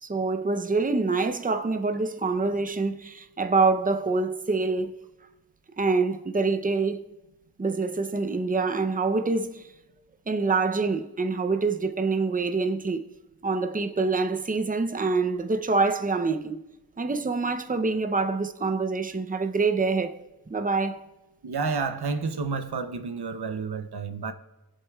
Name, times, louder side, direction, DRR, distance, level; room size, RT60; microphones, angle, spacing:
voice 1, 0.0-5.0 5.8-7.0 7.6-9.6 10.3-13.0 13.4-16.6 17.0-20.2 20.5-21.0, right 3 dB, 20° right, 0.6 m, -26 dB
voice 2, 21.4-24.3, right 4 dB, 80° right, 0.7 m, -30 dB
19.0 x 8.0 x 2.3 m
wide cardioid pair, 45°, 38 cm